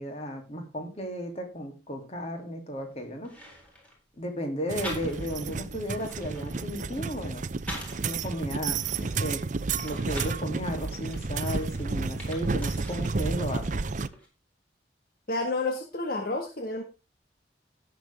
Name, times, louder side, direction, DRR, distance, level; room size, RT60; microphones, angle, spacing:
voice 1, 0.0-3.3 4.2-7.4 8.0-9.4 9.8-13.8, equal, 35° left, 3 dB, 2.9 m, -34 dB
sound 1, 2.8-2.9 3.2-4.0 4.8-5.5 5.8-8.1 8.6-10.4 11.0-13.2 13.5-14.3, equal, 10° left, 3.9 m, -44 dB
sound 2, 4.7-14.1, right 4 dB, 45° right, 0.6 m, -31 dB
voice 2, 15.3-16.8, left 2 dB, 55° left, 3 dB, 1.7 m, -30 dB
17.5 x 6.9 x 3.5 m, 0.29 s
head